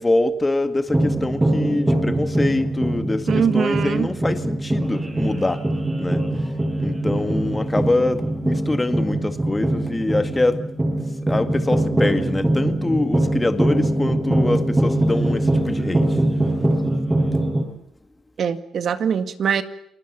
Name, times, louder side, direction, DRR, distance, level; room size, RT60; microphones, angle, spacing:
voice 1, 0.0-5.6 6.0-10.6 11.3-16.2, left 2 dB, 15° left, 9 dB, 2.1 m, -24 dB
sound 1, 0.9-17.6, right 1 dB, 15° right, 7.3 m, -22 dB
voice 2, 3.3-4.1 18.4-19.6, right 7 dB, 60° right, 10 dB, 1.9 m, -22 dB
29.5 x 20.0 x 6.9 m, 0.74 s
cardioid pair, 90°, 0 cm